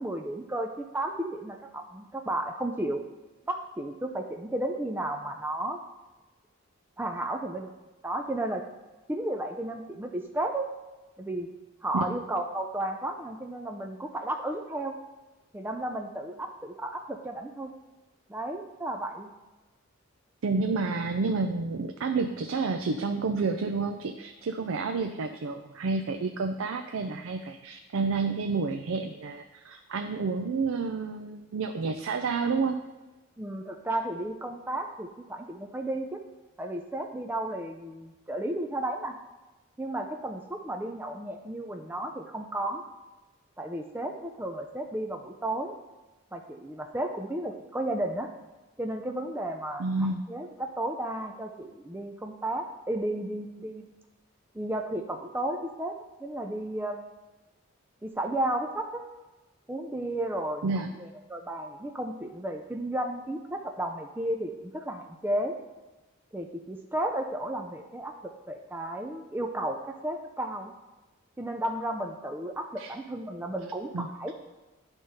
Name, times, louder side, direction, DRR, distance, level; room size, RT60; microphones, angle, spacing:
voice 1, 0.0-3.0 3.5-5.8 7.0-7.7 8.0-8.6 9.1-10.7 11.2-11.5 11.8-15.0 15.5-17.8 18.3-19.3 33.4-36.2 36.6-39.2 39.8-42.8 43.6-45.7 46.3-48.3 48.8-53.8 54.5-55.9 56.2-57.0 58.0-59.0 59.7-65.5 66.3-70.7 71.4-74.3, right 1 dB, 10° right, 3 dB, 0.4 m, -33 dB
voice 2, 20.4-32.8 49.8-50.2 60.6-60.9 72.8-73.0 73.9-74.1, right 4 dB, 75° right, 6 dB, 0.4 m, -30 dB
10.5 x 3.5 x 5.5 m, 1.1 s
head